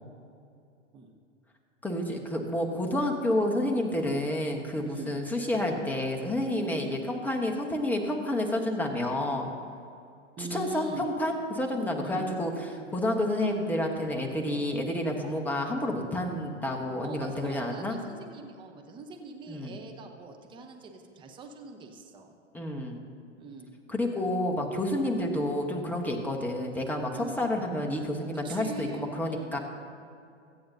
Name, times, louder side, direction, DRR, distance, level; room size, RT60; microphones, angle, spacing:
voice 1, 1.8-9.5 10.4-18.0 19.5-19.8 22.5-23.0 23.9-29.6, left 1 dB, 5° left, 1 dB, 1.1 m, -29 dB
voice 2, 4.8-5.2 10.4-11.1 12.0-12.3 12.7-12.9 17.0-22.3 23.4-23.7 26.2-26.4 27.1-27.4 28.4-29.6, right 3 dB, 15° right, 3 dB, 0.9 m, -42 dB
24.0 x 8.8 x 2.7 m, 2.5 s
figure-of-eight pair, 115°, 38 cm